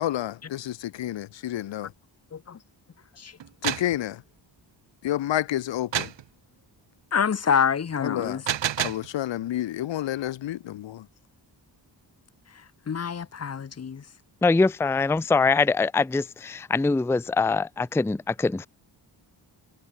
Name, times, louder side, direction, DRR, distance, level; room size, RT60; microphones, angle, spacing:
voice 1, 0.0-1.9 3.6-4.2 5.0-6.1 8.0-8.4 8.8-11.1, left 13 dB, 90° left, 0.8 m, -29 dB
voice 2, 2.3-2.6 3.2-3.4 7.1-8.5 12.5-14.1, left 7 dB, 35° left, 0.9 m, -27 dB
sound 1, 3.4-4.0 5.9-6.2 8.2-9.1, right 10 dB, 80° right, 1.6 m, -28 dB
voice 3, 14.4-18.7, left 4 dB, 5° left, 0.4 m, -23 dB
wide cardioid pair, 145°, 43 cm